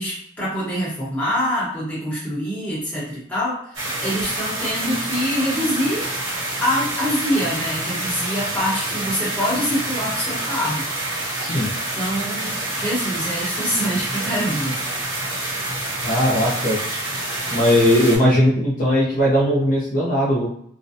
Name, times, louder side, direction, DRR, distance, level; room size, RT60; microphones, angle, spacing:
voice 1, 0.0-6.1 6.6-10.9 11.9-14.8, equal, 10° left, -8 dB, 0.9 m, -25 dB
sound 1, 3.7-18.2, right 2 dB, 80° right, 1.1 m, -27 dB
voice 2, 11.4-11.7 16.0-16.8 17.5-20.5, equal, 45° left, -6 dB, 0.6 m, -18 dB
2.4 x 2.1 x 2.6 m, 0.66 s
head